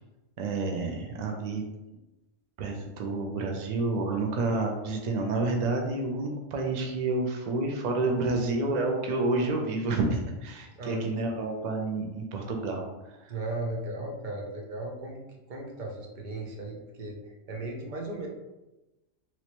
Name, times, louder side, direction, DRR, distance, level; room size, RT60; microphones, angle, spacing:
voice 1, 0.4-1.6 2.6-12.9 13.2-13.3, right 3 dB, 90° right, 2 dB, 0.3 m, -29 dB
voice 2, 10.7-11.5 13.3-18.3, right 2 dB, 50° right, 0 dB, 0.6 m, -36 dB
3.1 x 2.7 x 2.9 m, 1.0 s
omnidirectional pair, 1.3 m